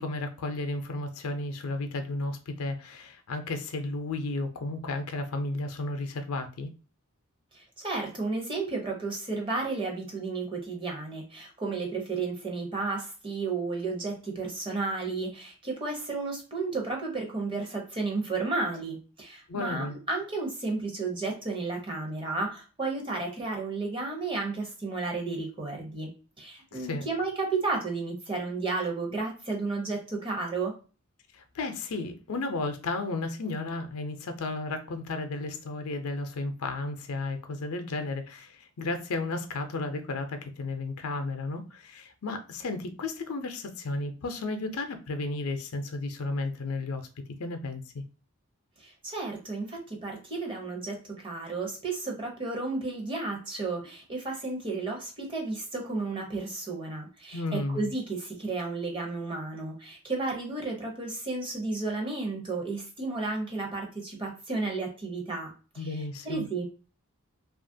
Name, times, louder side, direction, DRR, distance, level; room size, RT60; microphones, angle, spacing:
voice 1, 0.0-6.7 19.5-19.9 26.7-27.0 31.3-47.1 47.4-48.0 57.3-57.9 65.8-66.4, left 2 dB, 80° left, 0.5 m, -33 dB
voice 2, 7.5-26.1 26.4-30.7 48.8-66.6, right 3 dB, 25° right, 0.7 m, -33 dB
2.8 x 2.4 x 2.6 m
head